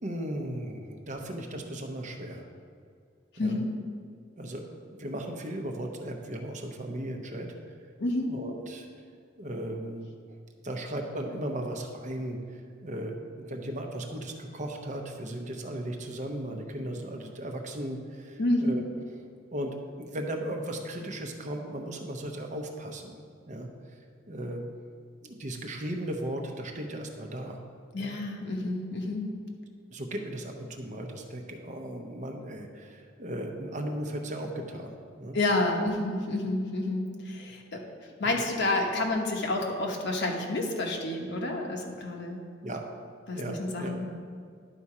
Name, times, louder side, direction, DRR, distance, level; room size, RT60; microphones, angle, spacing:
voice 1, 0.0-2.5 3.4-3.6 4.4-7.5 8.3-8.9 9.4-10.1 10.6-18.8 19.5-24.0 24.3-24.6 25.2-27.6 27.9-28.2 29.9-35.4 38.2-38.4 42.6-42.8 43.3-44.0, right 1 dB, 40° right, 3 dB, 0.8 m, -36 dB
voice 2, 3.3-3.7 8.0-8.3 18.4-18.8 27.9-29.3 35.3-37.8 38.2-42.4 43.3-44.1, left 2 dB, 60° left, 1 dB, 1.0 m, -29 dB
11.0 x 4.2 x 4.8 m, 2.1 s
head